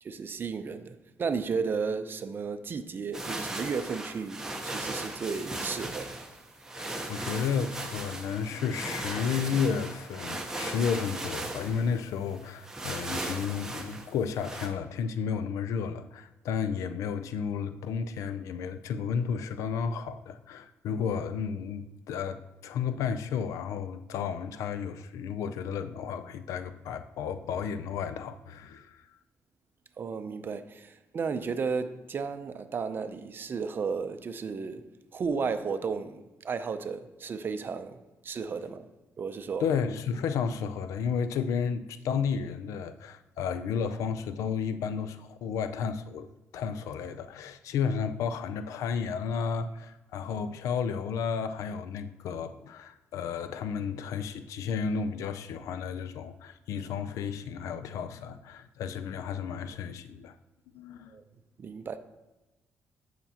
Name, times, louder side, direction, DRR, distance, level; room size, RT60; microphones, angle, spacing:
voice 1, 0.0-6.2 30.0-34.9 35.1-38.0 38.2-38.9 39.2-39.6 61.1-61.2 61.6-62.0, right 5 dB, 40° right, 0.5 m, -33 dB
sound 1, 3.1-14.7, right 2 dB, 10° right, 0.9 m, -37 dB
voice 2, 6.8-29.0 39.6-46.3 46.5-60.3 60.7-61.1, left 6 dB, 90° left, 0.4 m, -32 dB
9.1 x 5.8 x 2.9 m
cardioid pair, 115°, 5 cm